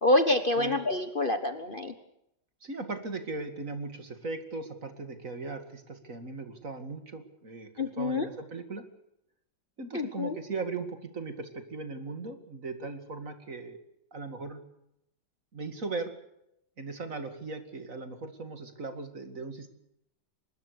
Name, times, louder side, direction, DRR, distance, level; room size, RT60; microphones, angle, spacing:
voice 1, 0.0-1.9 7.8-8.3 9.9-10.4, left 2 dB, 30° left, 8 dB, 1.3 m, -27 dB
voice 2, 2.6-8.8 9.8-13.8 14.1-14.6 15.5-16.1 16.8-19.7, right 3 dB, 45° right, 8 dB, 2.7 m, -38 dB
24.5 x 21.0 x 6.8 m, 0.81 s
omnidirectional pair, 2.0 m